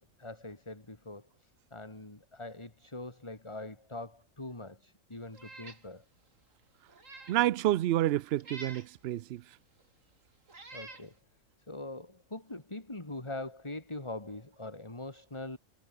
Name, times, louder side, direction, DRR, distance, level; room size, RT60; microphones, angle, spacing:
voice 1, 0.0-6.1 10.7-11.1 11.7-15.6, left 2 dB, 20° left, 2.7 m, -43 dB
Meow, 5.3-5.8 6.3-6.4 6.9-7.4 8.4-8.9 9.8-9.9 10.5-11.1, right 3 dB, 85° right, 4.3 m, -47 dB
voice 2, 7.3-9.4, right 14 dB, 65° right, 0.7 m, -29 dB
omnidirectional pair, 1.3 m